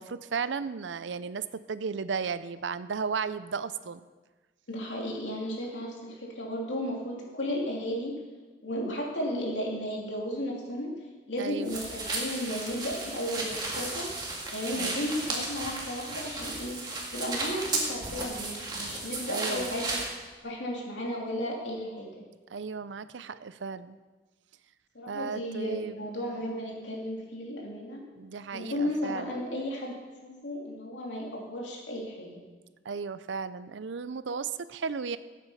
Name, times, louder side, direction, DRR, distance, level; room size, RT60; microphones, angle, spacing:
voice 1, 0.0-4.1 11.4-11.7 14.8-15.0 19.3-19.7 22.5-24.0 25.1-26.0 28.2-29.3 32.9-35.2, right 5 dB, 90° right, 14 dB, 0.5 m, -35 dB
voice 2, 4.7-8.2 8.6-11.0 11.3-16.8 17.1-20.0 20.4-22.2 24.9-28.0 28.5-32.4, equal, 85° left, -2 dB, 2.9 m, -34 dB
sound 1, 11.7-20.1, right 2 dB, 25° right, 2.0 m, -34 dB
13.0 x 8.4 x 5.7 m, 1.3 s
head